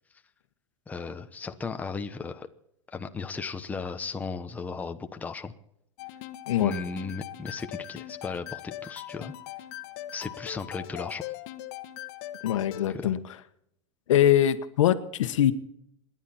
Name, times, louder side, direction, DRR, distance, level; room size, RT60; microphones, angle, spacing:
voice 1, 0.9-2.5 2.9-5.5 6.6-9.3 10.1-11.3 12.9-13.1, left 4 dB, 10° left, 7 dB, 1.0 m, -36 dB
sound 1, 6.0-12.9, left 14 dB, 55° left, 1.3 m, -40 dB
voice 2, 12.4-13.2 14.1-15.5, left 11 dB, 85° left, 11 dB, 1.4 m, -22 dB
28.0 x 11.0 x 4.4 m, 0.75 s
supercardioid pair, 145°, 16 cm